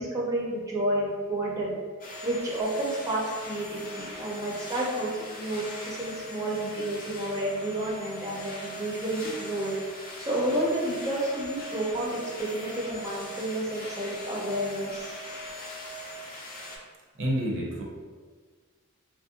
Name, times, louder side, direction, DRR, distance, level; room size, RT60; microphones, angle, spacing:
voice 1, 0.0-1.8 2.2-9.7 10.2-15.1, right 1 dB, 15° right, -5 dB, 0.5 m, -30 dB
sound 1, 2.0-16.8, equal, 40° left, 0.5 m, -40 dB
voice 2, 17.2-17.8, equal, 60° right, -2 dB, 0.5 m, -28 dB
2.9 x 2.5 x 2.7 m, 1.5 s
head